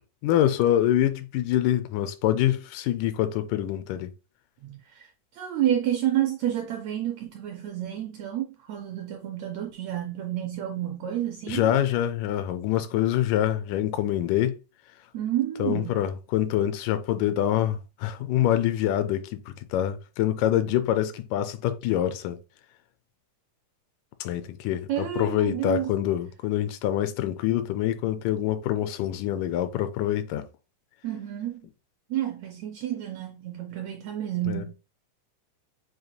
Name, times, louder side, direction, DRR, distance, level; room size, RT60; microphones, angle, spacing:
voice 1, 0.2-4.1 11.5-14.6 15.6-22.4 24.2-30.5 34.5-34.6, left 12 dB, 85° left, 2.2 m, -25 dB
voice 2, 4.6-11.9 15.1-16.0 24.9-25.9 31.0-31.6 32.1-34.7, right 12 dB, 80° right, 1.5 m, -30 dB
7.4 x 3.1 x 2.2 m
omnidirectional pair, 3.7 m